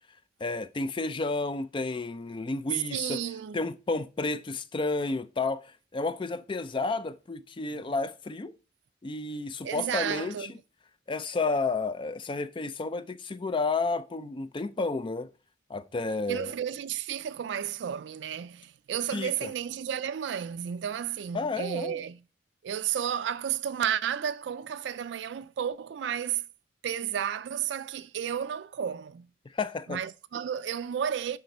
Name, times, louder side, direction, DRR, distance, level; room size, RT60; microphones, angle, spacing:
voice 1, 0.4-3.2 3.5-8.5 9.0-10.6 11.1-15.3 15.7-16.5 19.1-19.5 21.3-22.0 29.5-30.0, left 3 dB, 25° left, 0.4 m, -31 dB
voice 2, 2.9-3.6 9.6-10.5 16.3-22.2 22.6-26.4 26.8-29.3 29.9-31.4, right 9 dB, 70° right, 0.3 m, -32 dB
10.5 x 4.3 x 4.2 m
head